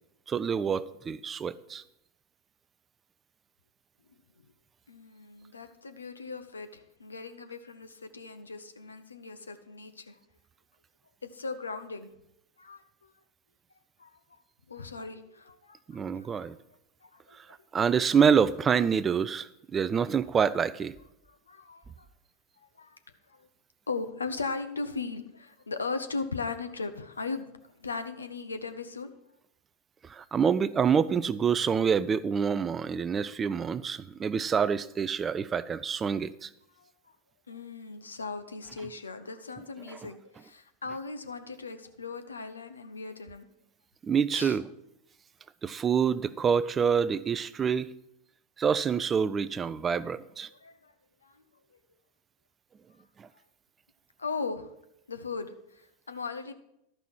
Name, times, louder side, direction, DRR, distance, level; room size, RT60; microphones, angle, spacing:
voice 1, 0.3-1.8 15.9-16.6 17.7-21.0 30.1-36.5 44.1-44.6 45.6-47.9 48.6-50.5 53.2-53.3, right 7 dB, 25° right, 0.4 m, -27 dB
voice 2, 4.9-10.2 11.2-12.1 12.6-13.1 14.0-14.4 14.7-16.5 17.0-17.6 21.3-22.1 22.8-23.0 23.3-23.5 23.9-29.1 36.8-37.2 37.5-43.5 44.3-44.6 50.5-50.9 51.2-51.4 51.7-51.8 54.2-54.7 55.1-56.5, left 4 dB, 85° left, 0.8 m, -38 dB
12.0 x 5.6 x 6.2 m
hypercardioid pair, 90°, 0 cm